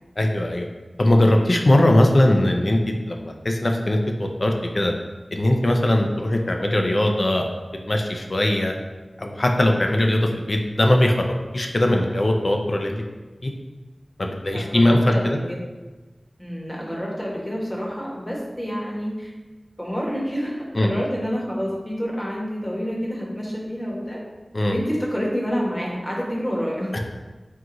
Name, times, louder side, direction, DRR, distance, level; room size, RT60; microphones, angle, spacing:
voice 1, 0.2-0.6 1.0-4.9 5.3-7.5 7.9-8.7 9.2-13.0 13.4-13.5 14.2-15.0 15.2-15.4 20.7-20.9 24.5-24.8 26.9-27.0, left 1 dB, 55° left, 2 dB, 0.5 m, -20 dB
voice 2, 14.5-15.4 16.4-19.3 19.8-24.2 24.7-26.9, equal, 20° left, -3 dB, 1.1 m, -28 dB
4.6 x 2.5 x 3.8 m, 1.2 s
wide cardioid pair, 55°, 0 cm